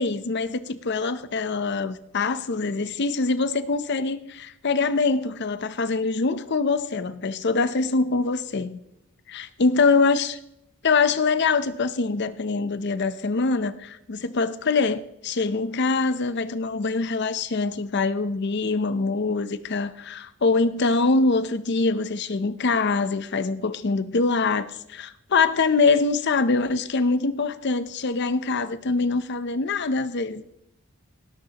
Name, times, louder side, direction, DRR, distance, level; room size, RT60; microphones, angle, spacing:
voice 1, 0.0-8.8 9.3-10.4 10.8-30.4, left 4 dB, 55° left, 13 dB, 0.6 m, -24 dB
18.0 x 12.0 x 2.9 m, 0.81 s
head